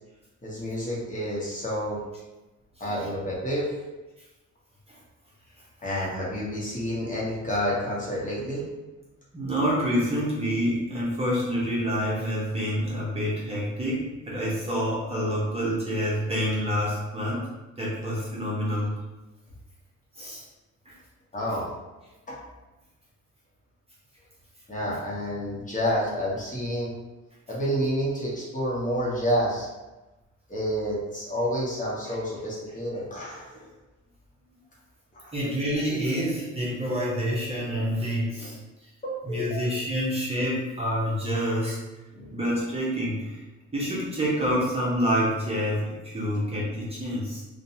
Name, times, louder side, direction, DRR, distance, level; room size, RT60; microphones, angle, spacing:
voice 1, 0.4-2.0 2.8-3.7 5.8-8.6 21.3-21.7 22.3-22.4 24.7-26.9 27.5-29.7 30.5-33.7 35.1-35.3 39.0-39.7 42.1-42.4, equal, 25° left, -7 dB, 0.9 m, -29 dB
voice 2, 9.3-17.5 17.8-18.9 20.2-20.4 20.9-21.0 32.1-32.2 35.3-38.6 39.2-41.8 42.3-43.4 43.7-47.4, equal, 20° right, -7 dB, 0.8 m, -27 dB
2.6 x 2.2 x 2.7 m, 1.1 s
cardioid pair, 90°, 30 cm